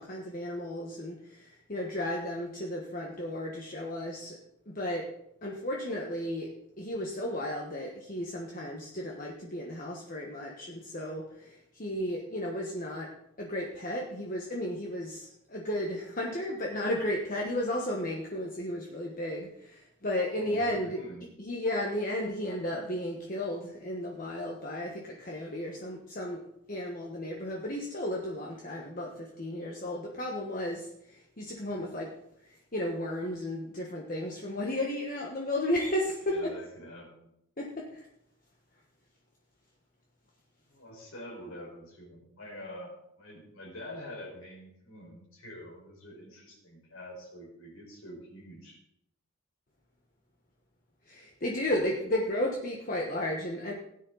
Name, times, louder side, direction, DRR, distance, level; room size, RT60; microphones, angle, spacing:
voice 1, 0.0-4.4 4.7-5.1 5.4-6.5 6.8-13.1 13.4-21.0 21.4-32.2 32.4-36.5 37.6-38.1 51.1-53.7, left 1 dB, 40° left, -1 dB, 1.3 m, -34 dB
voice 2, 20.3-21.3 36.3-37.3 40.7-48.8, left 1 dB, 80° left, -1 dB, 4.9 m, -46 dB
17.0 x 9.7 x 4.0 m, 0.79 s
head